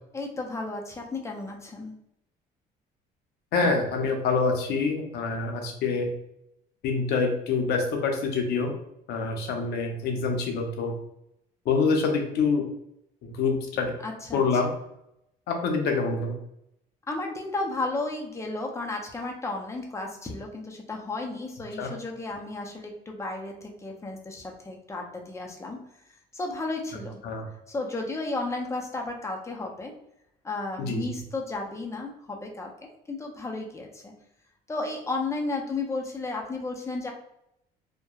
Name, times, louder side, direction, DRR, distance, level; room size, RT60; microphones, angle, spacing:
voice 1, 0.1-1.9 14.0-14.4 17.1-25.8 26.3-27.2 27.7-29.9 30.4-34.1 34.7-37.1, left 2 dB, 15° left, 1 dB, 0.5 m, -33 dB
voice 2, 3.5-6.1 6.8-8.7 9.1-10.9 11.7-12.6 13.2-13.9 14.3-14.7 15.5-16.4 21.8-21.9 27.2-27.4 30.8-31.2, left 4 dB, 75° left, 3 dB, 0.7 m, -26 dB
2.9 x 2.1 x 2.3 m, 0.79 s
cardioid pair, 110°, 17 cm